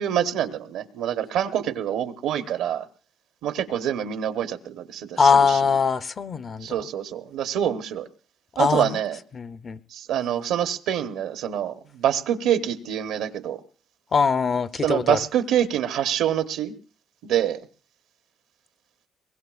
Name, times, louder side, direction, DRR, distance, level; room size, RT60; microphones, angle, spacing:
voice 1, 0.0-2.9 3.4-5.7 6.6-8.1 8.6-9.2 9.9-13.6 14.8-16.7 17.2-17.6, right 10 dB, 90° right, 0.9 m, -26 dB
voice 2, 5.2-6.8 8.6-9.0 9.3-9.8 14.1-15.2, left 5 dB, 45° left, 0.6 m, -22 dB
22.5 x 20.0 x 2.4 m
cardioid pair, 90°, 0 cm